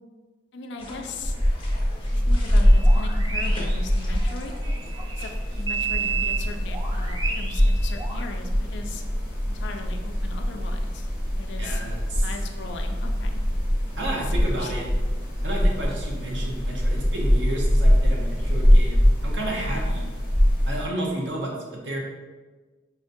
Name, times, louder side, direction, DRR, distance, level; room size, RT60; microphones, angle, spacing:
voice 1, 0.5-1.3 2.0-4.5 5.1-5.3 5.6-9.0 9.5-11.1 11.3-11.8 12.2-13.4 14.1-14.9, left 3 dB, 75° left, 5 dB, 0.4 m, -38 dB
sound 1, 0.8-5.9, left 1 dB, 30° left, 0.7 m, -43 dB
sound 2, 1.2-20.8, equal, 5° right, 1.0 m, -23 dB
sound 3, 2.7-8.2, right 6 dB, 25° right, 0.4 m, -32 dB
voice 2, 11.6-12.3 14.0-14.9 15.4-20.0 20.7-22.0, right 1 dB, 80° right, -1 dB, 0.7 m, -31 dB
5.4 x 2.1 x 2.6 m, 1.3 s
head